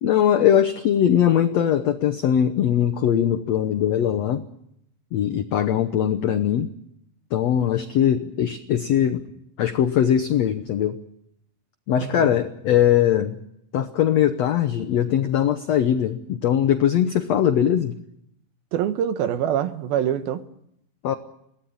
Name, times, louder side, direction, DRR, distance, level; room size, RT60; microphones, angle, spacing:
voice 1, 0.0-4.4 5.1-6.7 7.3-9.2 9.6-11.0 11.9-13.3 13.7-18.0 21.0-21.1, left 10 dB, 85° left, 1.5 m, -21 dB
voice 2, 12.0-12.4 18.7-20.4, right 10 dB, 75° right, 2.8 m, -25 dB
22.5 x 17.0 x 8.7 m
omnidirectional pair, 4.4 m